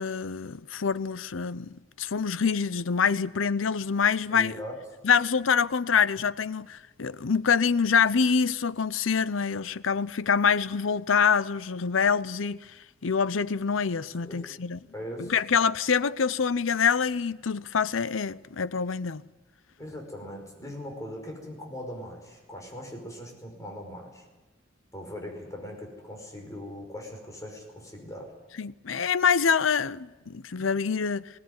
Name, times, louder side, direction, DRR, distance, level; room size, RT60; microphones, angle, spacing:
voice 1, 0.0-1.7 2.0-4.6 5.0-12.6 13.0-14.8 15.2-19.2 28.6-31.3, left 6 dB, 80° left, 0.7 m, -25 dB
voice 2, 4.3-4.7 14.2-14.4 14.9-15.3 19.8-24.2 24.9-28.3 30.6-30.7, equal, 15° left, 5.3 m, -40 dB
21.0 x 18.0 x 9.5 m
head